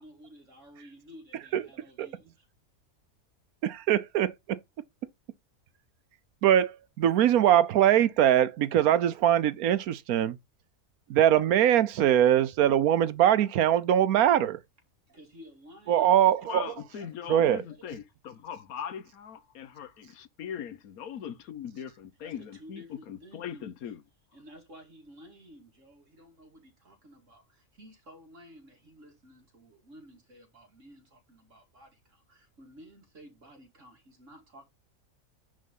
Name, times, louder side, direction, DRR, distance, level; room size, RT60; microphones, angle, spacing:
voice 1, 0.0-2.4 15.1-16.7 17.0-17.3 17.7-17.8 22.1-23.7 24.3-34.7, equal, 60° right, 2.7 m, -53 dB
voice 2, 3.6-4.6 6.4-10.4 11.1-14.6 15.9-16.7 17.3-17.6, right 11 dB, 85° right, 1.2 m, -22 dB
voice 3, 16.5-24.0, left 8 dB, 85° left, 1.4 m, -40 dB
10.0 x 3.8 x 5.4 m
omnidirectional pair, 1.5 m